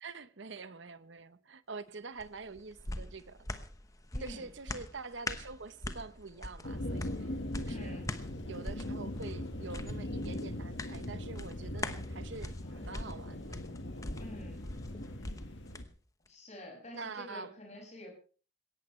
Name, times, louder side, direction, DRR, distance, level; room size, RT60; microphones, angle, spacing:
voice 1, 0.0-3.4 4.2-7.3 7.6-8.1 8.5-13.6 16.9-17.5, right 4 dB, 65° right, 0.9 m, -45 dB
sound 1, 2.2-15.9 16.3-16.4, left 1 dB, 15° left, 1.0 m, -43 dB
voice 2, 4.1-4.5 7.6-8.1 14.2-14.6 16.3-18.1, left 1 dB, 35° left, 6.3 m, -47 dB
sound 2, 6.6-15.9, left 1 dB, 65° left, 1.6 m, -40 dB
20.5 x 18.0 x 3.2 m
head